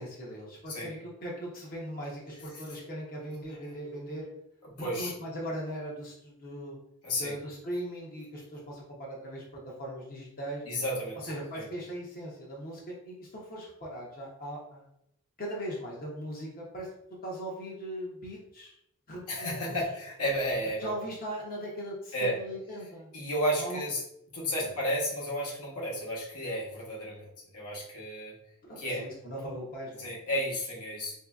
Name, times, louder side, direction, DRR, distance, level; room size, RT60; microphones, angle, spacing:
voice 1, 0.0-4.3 4.8-6.8 7.2-10.6 11.2-14.9 15.4-16.9 17.2-18.7 19.1-19.8 20.8-23.1 23.6-23.8 24.6-24.7 28.6-30.1, equal, 40° left, -4 dB, 0.7 m, -39 dB
voice 2, 4.6-5.1 7.0-7.3 10.7-11.6 19.3-20.9 22.1-22.4 23.1-24.0 24.3-28.3 28.8-29.1 30.0-31.1, equal, 80° left, -4 dB, 1.1 m, -32 dB
4.1 x 2.6 x 2.3 m, 0.77 s
head